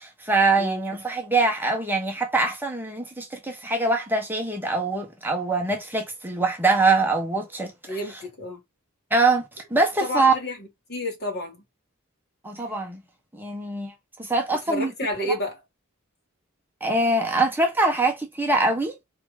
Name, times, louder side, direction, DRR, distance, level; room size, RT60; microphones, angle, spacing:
voice 1, 0.0-8.0 9.1-10.3 12.4-13.0 13.3-13.9 14.2-14.9 16.8-18.9, right 3 dB, 10° right, 1.6 m, -23 dB
voice 2, 7.9-8.6 10.0-11.6 14.7-15.6, left 1 dB, 50° left, 3.8 m, -30 dB
5.8 x 5.2 x 4.2 m
head